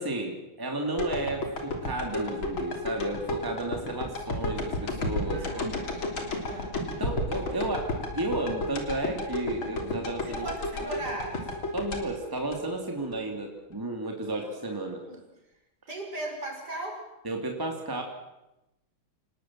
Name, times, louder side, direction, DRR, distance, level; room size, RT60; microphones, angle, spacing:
voice 1, 0.0-5.7 7.0-10.5 10.8-11.0 11.7-15.0 17.2-18.0, right 2 dB, 10° right, 2 dB, 2.7 m, -33 dB
sound 1, 1.0-13.2 13.6-13.7, left 2 dB, 75° left, 4.1 m, -32 dB
voice 2, 5.3-6.7 10.3-11.5 14.3-14.7 15.0-15.2 15.9-17.1, right 2 dB, 50° right, 1 dB, 6.1 m, -38 dB
28.0 x 19.5 x 7.6 m, 0.96 s
omnidirectional pair, 2.3 m